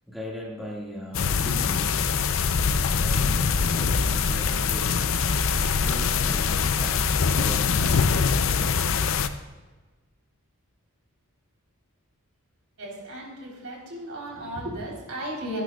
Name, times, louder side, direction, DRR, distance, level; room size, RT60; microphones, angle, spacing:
voice 1, 0.1-2.0 3.0-5.1 5.8-8.0, equal, ahead, -5 dB, 1.9 m, -38 dB
sound 1, 1.1-9.3, left 5 dB, 60° left, 0.5 m, -23 dB
voice 2, 12.8-15.6, right 1 dB, 75° right, -2 dB, 3.6 m, -35 dB
17.5 x 10.5 x 2.3 m, 1.3 s
head